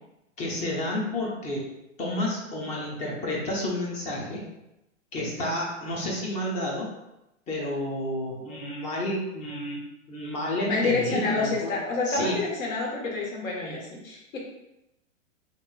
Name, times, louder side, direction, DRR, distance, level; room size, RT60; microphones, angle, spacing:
voice 1, 0.4-1.7 2.0-4.5 5.1-6.9 7.5-9.8 10.1-11.7 12.0-12.4, left 1 dB, 15° left, -3 dB, 0.5 m, -30 dB
voice 2, 10.7-14.4, left 3 dB, 75° left, -2 dB, 1.3 m, -28 dB
3.6 x 2.9 x 2.3 m, 0.90 s
hypercardioid pair, 130°, 41 cm